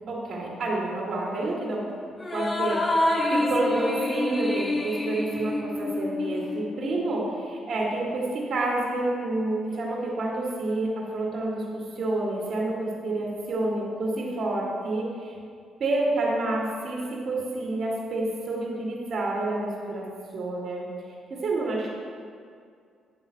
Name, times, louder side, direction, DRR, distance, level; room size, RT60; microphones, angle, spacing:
voice 1, 0.1-1.8 2.3-15.3 15.8-20.1 20.3-20.9 21.3-21.9, right 2 dB, 55° right, -3 dB, 2.0 m, -29 dB
sound 1, 2.2-6.9, left 2 dB, 25° left, 0.8 m, -27 dB
9.3 x 4.0 x 7.0 m, 2.2 s
cardioid pair, 90°, 0 cm